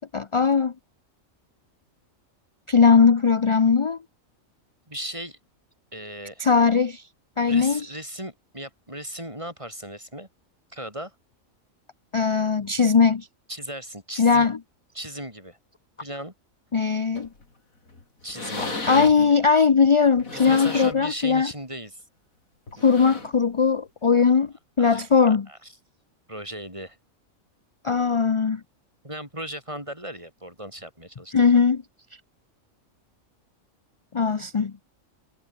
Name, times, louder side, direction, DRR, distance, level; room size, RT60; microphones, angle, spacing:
voice 1, 0.1-0.7 2.7-4.0 6.4-7.0 7.4-7.9 12.1-13.3 14.2-14.6 16.7-17.3 18.6-21.5 22.8-25.5 27.8-28.6 31.3-31.8 34.1-34.7, left 5 dB, 40° left, 0.4 m, -19 dB
voice 2, 4.9-5.4 5.9-6.4 7.5-10.3 10.7-11.1 13.5-14.5 14.9-15.6 16.0-16.3 18.2-18.8 20.3-22.0 22.8-23.2 24.8-25.0 25.5-25.6 26.3-27.0 29.0-31.5, right 1 dB, 20° right, 8.0 m, -37 dB
sound 1, 17.2-17.4 17.9-18.0 18.3-19.4 20.0-21.1 21.6-21.8 22.7-23.4 24.5-24.6, left 3 dB, 85° left, 4.3 m, -34 dB
omnidirectional pair, 1.4 m